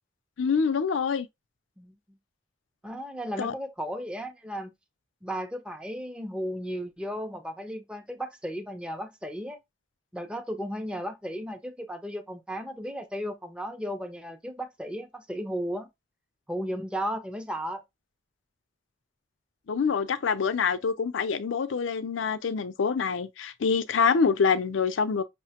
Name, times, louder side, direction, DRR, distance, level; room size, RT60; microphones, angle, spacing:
voice 1, 0.4-1.3 3.4-3.5 19.7-25.2, left 5 dB, 85° left, 0.5 m, -26 dB
voice 2, 1.8-2.2 2.8-4.7 5.2-9.6 10.1-15.9 16.5-17.8, equal, 5° right, 0.4 m, -35 dB
5.6 x 2.1 x 2.8 m
head